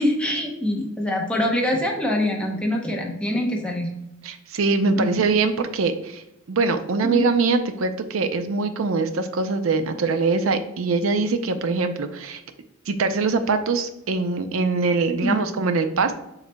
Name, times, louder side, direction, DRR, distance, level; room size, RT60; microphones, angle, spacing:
voice 1, 0.0-3.9 5.0-5.2 7.0-7.2 15.2-15.6, left 1 dB, 5° left, -1 dB, 0.8 m, -24 dB
voice 2, 4.2-12.4 12.9-16.1, right 4 dB, 80° right, 9 dB, 0.5 m, -23 dB
7.1 x 3.2 x 2.2 m, 0.88 s
head